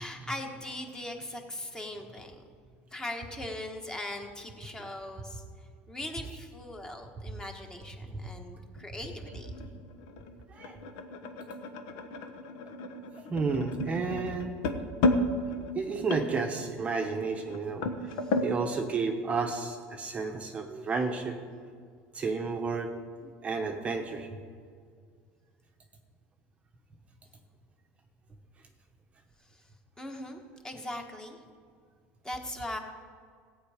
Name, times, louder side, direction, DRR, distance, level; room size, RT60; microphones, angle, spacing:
voice 1, 0.0-2.4 2.9-5.4 5.9-9.5 18.2-18.3 30.0-31.4 32.2-32.8, left 1 dB, 10° left, 3 dB, 1.4 m, -40 dB
sound 1, 8.8-18.5, left 2 dB, 75° left, 1.1 m, -33 dB
voice 2, 13.3-14.6 15.8-17.9 18.4-21.7 22.1-23.0 23.4-24.3, right 4 dB, 25° right, 4 dB, 0.9 m, -31 dB
15.5 x 8.8 x 5.0 m, 2.1 s
supercardioid pair, 130°, 5 cm